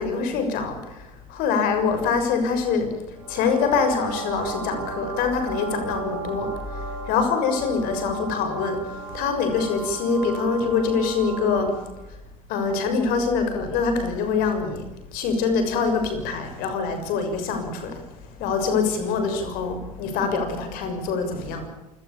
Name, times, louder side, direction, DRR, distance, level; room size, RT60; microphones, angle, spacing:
voice 1, 0.0-2.9 3.3-11.8 12.5-14.8 15.1-18.0 18.4-21.7, left 5 dB, 60° left, 7 dB, 6.6 m, -24 dB
sound 1, 3.2-12.0, right 4 dB, 85° right, 4.5 m, -35 dB
28.0 x 18.5 x 7.0 m, 1.0 s
figure-of-eight pair, 70°, 17 cm